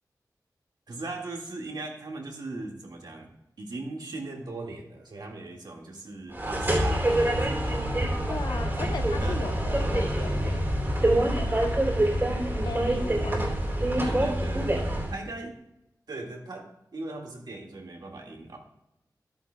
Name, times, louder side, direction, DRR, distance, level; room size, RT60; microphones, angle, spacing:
voice 1, 0.9-3.3 3.6-7.6 9.2-9.4 14.0-14.7 15.1-15.6 16.1-18.6, right 2 dB, 80° right, 0 dB, 1.9 m, -39 dB
sound 1, 6.3-15.2, right 1 dB, 35° right, 2.8 m, -26 dB
voice 2, 8.3-10.6 11.1-11.7 12.6-13.9, left 4 dB, 85° left, 6 dB, 1.0 m, -38 dB
13.0 x 11.0 x 2.3 m, 0.85 s
wide cardioid pair, 85°, 7 cm